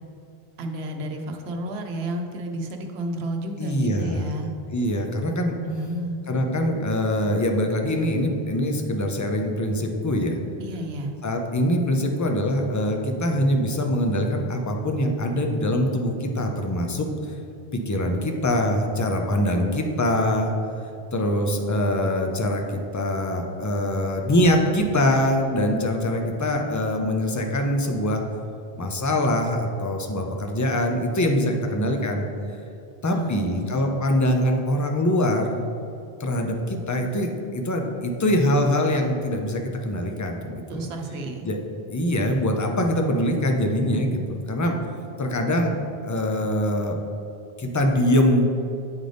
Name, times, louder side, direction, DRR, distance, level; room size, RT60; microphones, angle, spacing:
voice 1, 0.6-4.5 5.6-6.2 10.6-11.1 33.1-33.7 40.7-41.5 42.2-42.3, right 1 dB, 90° right, 3 dB, 1.0 m, -31 dB
voice 2, 3.6-4.3 4.7-5.5 6.3-10.4 11.2-17.3 17.7-20.5 21.1-28.2 28.8-32.3 33.0-35.7 36.2-40.9 41.4-41.6 41.9-44.8 45.2-47.0 47.6-48.5, left 1 dB, 30° left, 3 dB, 0.3 m, -23 dB
9.0 x 3.4 x 3.9 m, 2.7 s
omnidirectional pair, 1.0 m